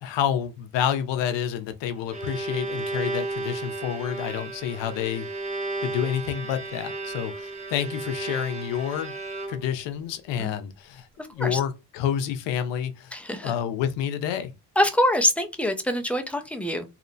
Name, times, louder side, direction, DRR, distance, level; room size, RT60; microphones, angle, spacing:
voice 1, 0.0-5.3 5.8-9.1 9.5-11.1 11.3-13.1 13.4-14.5, left 9 dB, 70° left, 0.6 m, -28 dB
Bowed string instrument, 1.8-9.9, right 2 dB, 15° right, 0.7 m, -34 dB
voice 2, 13.1-13.5 14.8-16.8, left 1 dB, 5° left, 0.3 m, -24 dB
2.8 x 2.0 x 2.6 m
cardioid pair, 85°, 45 cm